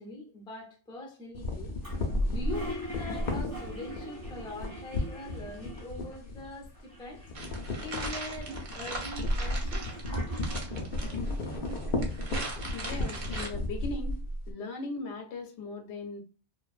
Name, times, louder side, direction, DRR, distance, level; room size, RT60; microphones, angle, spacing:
voice 1, 0.0-1.7 2.3-7.2 7.8-9.9, left 2 dB, 5° left, 0.3 m, -42 dB
sound 1, 1.3-6.8 7.1-14.5, left 1 dB, 60° left, 0.7 m, -34 dB
Toilet flush, 1.8-6.2 6.4-6.5 6.7-7.6 8.1-10.9, right 1 dB, 20° right, 0.8 m, -42 dB
sound 2, 7.4-13.5, right 2 dB, 50° right, 0.7 m, -40 dB
voice 2, 12.7-14.2 14.5-16.2, left 3 dB, 85° left, 0.9 m, -38 dB
2.6 x 2.1 x 2.3 m
omnidirectional pair, 1.1 m